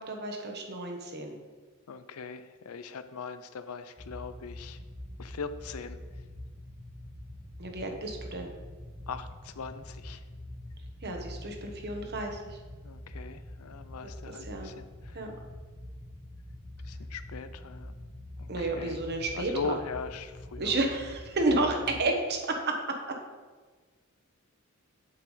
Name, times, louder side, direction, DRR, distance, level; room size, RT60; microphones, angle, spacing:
voice 1, 0.0-1.3 7.6-8.5 11.0-12.6 14.0-14.7 15.1-15.3 18.5-19.8 20.6-23.0, right 2 dB, 50° right, 3 dB, 1.1 m, -31 dB
voice 2, 1.9-4.8 5.2-6.0 9.1-10.2 12.8-15.3 16.9-17.9 18.4-19.0 19.3-21.0, left 4 dB, 80° left, 11 dB, 0.5 m, -40 dB
sound 1, 4.0-22.0, left 1 dB, 15° right, 1.0 m, -45 dB
8.6 x 7.0 x 3.2 m, 1.4 s
head